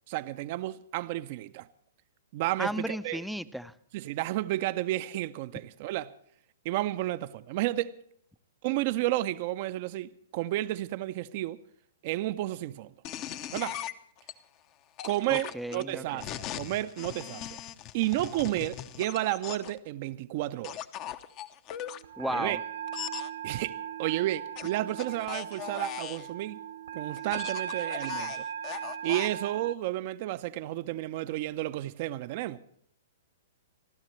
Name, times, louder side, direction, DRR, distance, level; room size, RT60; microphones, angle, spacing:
voice 1, 0.1-1.7 2.3-3.2 3.9-6.1 6.6-8.0 8.6-11.6 12.0-12.9 13.5-13.8 15.0-17.6 17.9-20.8 22.3-22.6 23.4-26.6 26.9-28.4 29.0-32.6, right 15 dB, 45° right, 0.6 m, -32 dB
voice 2, 2.6-3.7 15.3-16.3 22.2-22.6, equal, ahead, 0.6 m, -34 dB
sound 1, 13.0-14.3 15.0-19.8 20.6-22.0 22.9-23.3 24.6-26.3 27.2-29.4, left 11 dB, 35° left, 0.9 m, -39 dB
sound 2, 21.9-29.7, right 9 dB, 70° right, 1.2 m, -38 dB
29.5 x 12.5 x 3.2 m
figure-of-eight pair, 115°, 0 cm